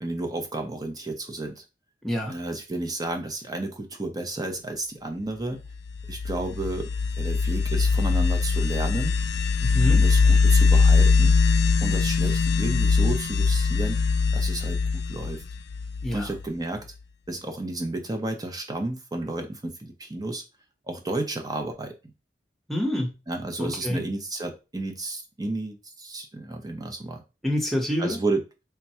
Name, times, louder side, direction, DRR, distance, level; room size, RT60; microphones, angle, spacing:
voice 1, 0.0-1.6 2.3-5.6 6.1-6.9 7.2-9.2 9.9-11.4 11.8-14.0 14.3-14.8 15.1-15.4 16.1-16.9 17.3-20.4 20.9-21.9 23.3-27.2 28.0-28.4, right 2 dB, 20° right, 4 dB, 0.6 m, -32 dB
voice 2, 2.0-2.3 9.6-10.0 16.0-16.3 22.7-23.1 23.6-24.0 27.4-28.2, equal, ahead, 1 dB, 0.9 m, -27 dB
sound 1, 5.9-16.4, left 4 dB, 70° left, 0.3 m, -21 dB
3.4 x 2.2 x 4.2 m, 0.28 s
head